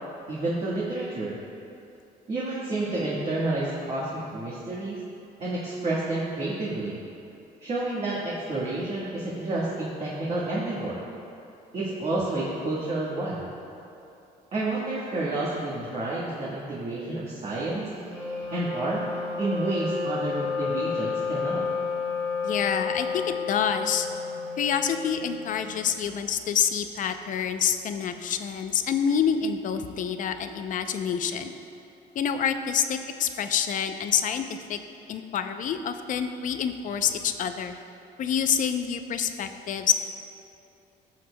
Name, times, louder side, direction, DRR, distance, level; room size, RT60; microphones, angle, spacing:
voice 1, 0.3-1.4 2.3-5.0 5.4-7.0 7.6-11.0 11.7-13.5 14.5-17.9 18.5-19.0 19.4-21.7, right 2 dB, 40° right, -7 dB, 1.4 m, -30 dB
Wind instrument woodwind instrument, 18.0-25.8, left 4 dB, 10° right, 1.7 m, -31 dB
voice 2, 22.4-24.1 24.6-31.5 32.1-34.8 35.1-37.7 38.2-39.9, left 8 dB, 50° left, 8 dB, 0.5 m, -27 dB
14.5 x 6.5 x 2.2 m, 2.7 s
cardioid pair, 110°, 17 cm